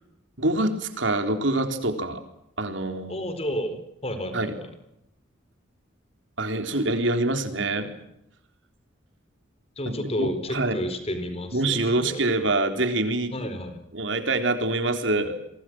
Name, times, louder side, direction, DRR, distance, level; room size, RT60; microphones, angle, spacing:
voice 1, 0.4-2.2 2.6-3.2 4.3-4.5 6.4-7.9 10.0-10.8 11.5-13.3 13.9-15.4, right 2 dB, 70° right, 7 dB, 4.0 m, -25 dB
voice 2, 3.1-4.5 9.8-12.2 13.3-13.8, equal, 30° left, 9 dB, 4.6 m, -31 dB
30.0 x 23.5 x 6.3 m, 0.81 s
head